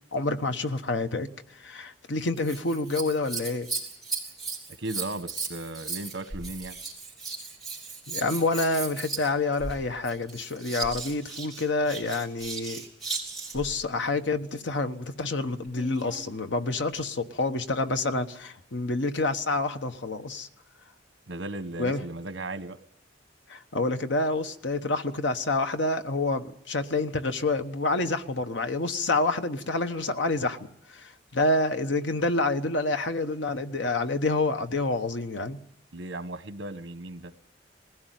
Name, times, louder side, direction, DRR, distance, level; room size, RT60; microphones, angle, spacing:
voice 1, 0.1-3.7 8.1-12.8 13.5-20.5 21.8-22.0 23.5-35.6, left 2 dB, 85° left, 1.2 m, -28 dB
Scissors, 2.4-13.7 15.7-16.3 17.0-17.1, right 4 dB, ahead, 5.1 m, -36 dB
voice 2, 4.8-6.8 21.3-22.8 35.9-37.3, right 2 dB, 85° right, 1.2 m, -36 dB
20.5 x 16.0 x 9.4 m
head